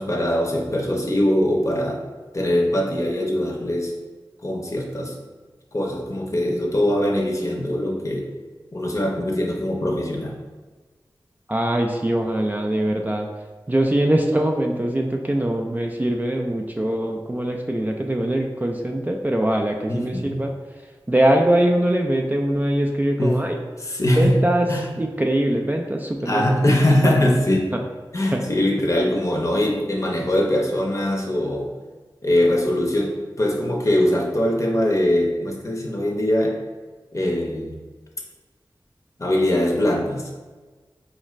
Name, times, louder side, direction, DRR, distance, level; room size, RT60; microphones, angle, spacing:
voice 1, 0.0-2.0 2.3-3.9 4.4-5.1 5.7-8.3 8.7-10.4 19.9-20.4 23.2-23.4 23.8-24.4 24.7-24.8 26.3-27.7 28.1-31.7 32.2-36.6 37.1-37.8 39.2-40.3, left 1 dB, 40° left, 0 dB, 0.7 m, -22 dB
voice 2, 11.5-13.3 13.7-20.5 21.1-23.6 24.2-24.7 25.0-26.5 27.0-27.2 28.3-28.4, right 1 dB, 20° right, 2 dB, 0.3 m, -22 dB
4.1 x 2.4 x 3.1 m, 1.3 s
wide cardioid pair, 60°, 8 cm